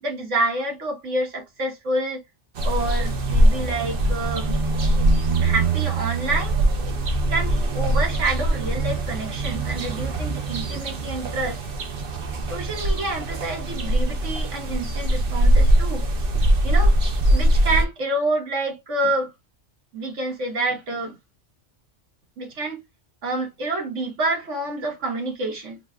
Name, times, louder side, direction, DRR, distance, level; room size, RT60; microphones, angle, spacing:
voice 1, 0.0-2.2 2.6-4.5 5.4-6.5 7.3-11.6 12.5-16.1 16.6-17.0 17.3-19.3 19.9-21.2 22.4-22.8 23.2-25.8, right 2 dB, 75° right, 1.7 m, -28 dB
sound 1, 2.6-17.8, right 1 dB, 55° right, 0.8 m, -22 dB
3.7 x 2.2 x 3.6 m
omnidirectional pair, 1.3 m